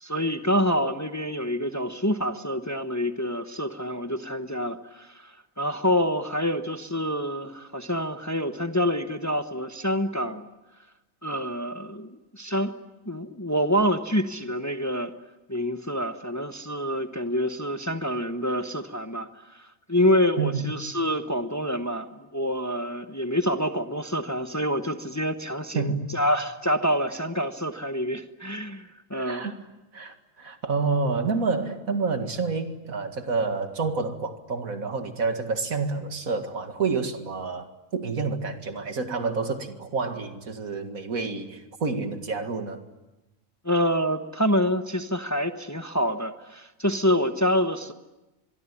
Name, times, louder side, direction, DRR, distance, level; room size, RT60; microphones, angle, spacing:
voice 1, 0.0-10.5 11.2-12.7 13.1-15.1 15.5-29.5 43.6-47.9, equal, 15° left, 8 dB, 1.1 m, -27 dB
voice 2, 25.7-26.1 29.1-29.5 29.9-42.9, right 4 dB, 80° right, 7 dB, 2.5 m, -28 dB
24.5 x 23.0 x 9.9 m, 1.0 s
omnidirectional pair, 1.4 m